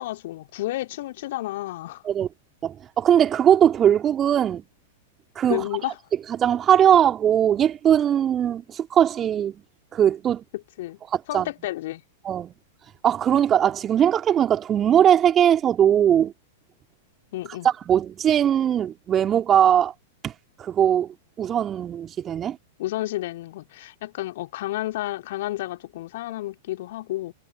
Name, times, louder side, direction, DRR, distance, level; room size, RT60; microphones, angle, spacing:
voice 1, 0.0-2.0 5.5-5.9 10.8-11.0 11.3-12.0 17.3-17.7 22.8-27.3, left 16 dB, 55° left, 2.9 m, -31 dB
voice 2, 2.6-4.6 5.3-5.6 6.3-9.6 9.9-10.4 11.1-11.5 12.2-12.5 13.0-16.3 17.6-19.9 20.2-20.3 20.6-22.6, right 9 dB, 25° right, 3.0 m, -20 dB
figure-of-eight pair, 95°, 0 cm